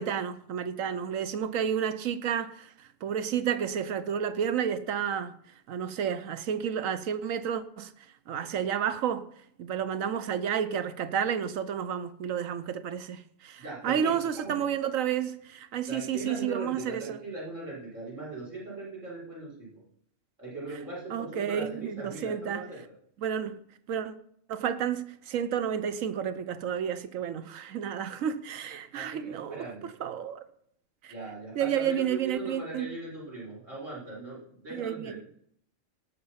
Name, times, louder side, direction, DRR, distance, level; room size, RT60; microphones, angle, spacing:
voice 1, 0.0-2.7 3.0-5.4 5.7-7.9 8.3-9.3 9.6-17.2 21.1-22.7 23.2-23.6 23.9-24.1 24.5-30.4 31.0-31.1 31.5-32.9 34.7-35.2, right 8 dB, 85° right, 1.2 m, -31 dB
voice 2, 13.6-14.4 15.9-19.8 20.4-22.8 28.9-29.9 31.1-35.2, right 2 dB, 70° right, 5.9 m, -39 dB
18.0 x 7.1 x 5.7 m
omnidirectional pair, 1.3 m